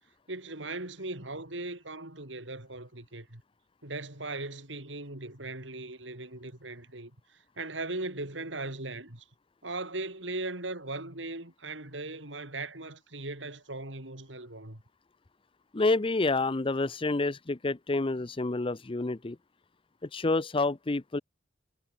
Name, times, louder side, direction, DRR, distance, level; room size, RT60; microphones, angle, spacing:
voice 1, 0.3-3.4 3.8-9.2 9.6-14.8, right 2 dB, 70° right, 4.8 m, -39 dB
voice 2, 15.7-19.4 20.1-21.2, left 3 dB, 30° left, 0.6 m, -28 dB
head